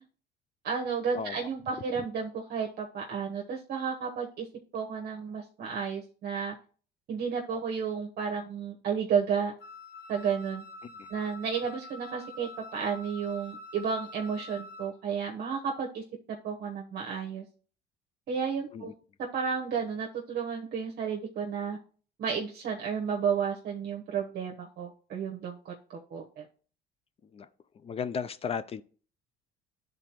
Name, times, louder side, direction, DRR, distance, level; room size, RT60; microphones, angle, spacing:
voice 1, 0.6-4.5 4.7-6.5 7.1-9.5 10.1-10.6 11.1-17.4 18.3-18.9 19.3-21.8 22.2-26.4, right 6 dB, 55° right, 0.9 m, -32 dB
Wind instrument woodwind instrument, 9.6-14.9, left 2 dB, 80° left, 1.7 m, -46 dB
voice 2, 27.8-28.8, left 6 dB, 30° left, 0.4 m, -35 dB
11.0 x 3.9 x 2.9 m
cardioid pair, 100°, 20 cm